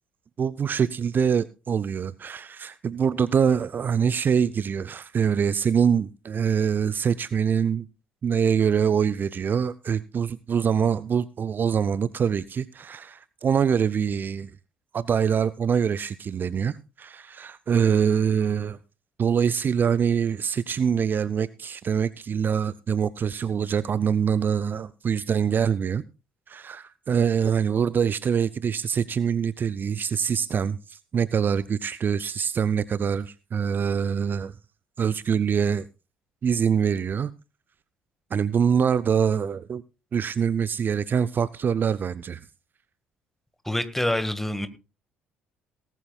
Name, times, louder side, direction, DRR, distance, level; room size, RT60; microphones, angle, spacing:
voice 1, 0.4-7.9 8.2-14.5 14.9-18.8 19.2-26.0 26.5-34.6 35.0-35.9 36.4-37.3 38.3-39.8 40.1-42.4, right 7 dB, 35° right, 0.5 m, -24 dB
voice 2, 43.7-44.7, left 1 dB, 5° left, 1.7 m, -26 dB
18.5 x 14.0 x 2.3 m
figure-of-eight pair, 55°, 6 cm